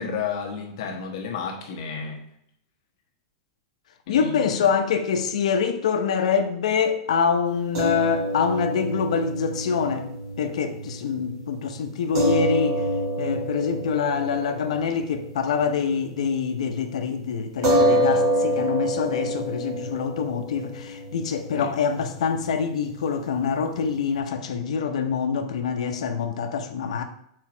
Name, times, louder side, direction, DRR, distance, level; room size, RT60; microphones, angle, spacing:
voice 1, 0.0-2.2 4.1-4.7 21.5-21.7, left 6 dB, 55° left, 1.1 m, -32 dB
voice 2, 4.1-10.1 10.4-12.8 13.2-27.0, left 6 dB, 85° left, 0.8 m, -25 dB
sound 1, 7.8-16.3 16.6-16.7 17.6-24.2, equal, 50° right, 2.2 m, -27 dB
4.7 x 4.4 x 5.9 m
supercardioid pair, 165°, 3 cm